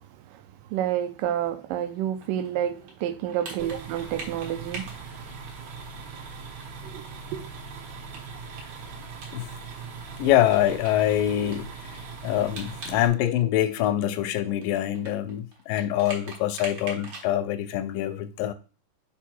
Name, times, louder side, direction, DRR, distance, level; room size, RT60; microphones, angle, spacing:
voice 1, 0.7-4.9 6.8-7.1 7.3-7.5, right 11 dB, 85° right, 2.3 m, -29 dB
sound 1, 2.2-6.0 6.3-6.4 6.6-6.7 7.1-9.8 10.1-10.2 10.5-13.0 13.3-17.3, right 3 dB, 50° right, 2.2 m, -43 dB
sound 2, 3.6-13.1, right 4 dB, 65° right, 2.1 m, -40 dB
voice 2, 10.2-18.5, left 12 dB, 85° left, 2.2 m, -25 dB
5.6 x 4.7 x 4.4 m
omnidirectional pair, 3.9 m